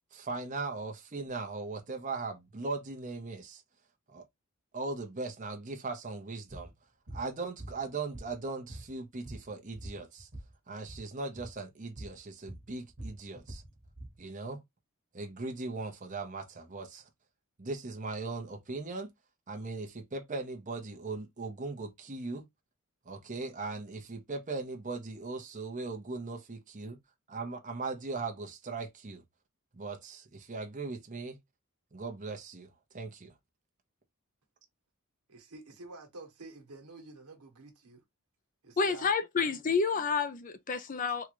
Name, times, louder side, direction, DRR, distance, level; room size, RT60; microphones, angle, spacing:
voice 1, 0.1-3.6 4.1-4.2 4.7-6.7 7.1-10.3 10.7-13.6 14.2-14.6 15.1-17.0 17.6-19.1 19.5-22.4 23.1-27.0 27.3-29.2 29.7-31.4 31.9-32.7 32.9-33.3, right 3 dB, 35° right, 0.8 m, -39 dB
sound 1, 6.5-6.7 7.1-7.3 7.6-8.4 8.7-10.5 10.8-11.1 11.4-11.6 12.0-12.2 12.5-14.2, right 1 dB, 50° right, 1.3 m, -45 dB
voice 2, 35.3-38.0 38.6-39.1, right 3 dB, 90° right, 1.2 m, -49 dB
voice 3, 38.8-41.3, left 5 dB, 35° left, 0.5 m, -29 dB
3.6 x 2.4 x 3.0 m
head